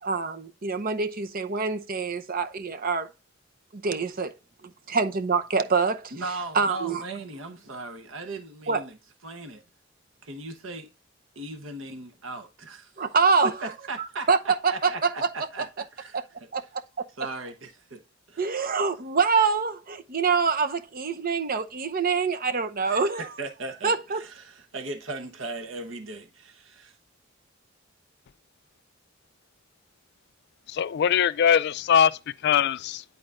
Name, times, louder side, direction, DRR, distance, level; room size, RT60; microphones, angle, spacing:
voice 1, 0.0-3.1 3.7-4.3 4.9-6.1 6.5-7.0 8.7-8.8 13.0-13.5 14.0-14.4 14.6-15.3 16.1-16.2 16.5-16.6 17.0-17.1 18.4-23.3 23.8-24.2, right 5 dB, 50° right, 0.8 m, -25 dB
voice 2, 6.1-9.0 9.2-9.6 10.2-10.9 11.3-12.9 13.6-14.3 14.7-16.2 17.2-18.0 18.3-18.7 22.8-26.9, right 2 dB, 85° right, 1.1 m, -38 dB
voice 3, 30.7-33.0, left 8 dB, 60° left, 0.3 m, -22 dB
10.5 x 4.2 x 2.5 m
head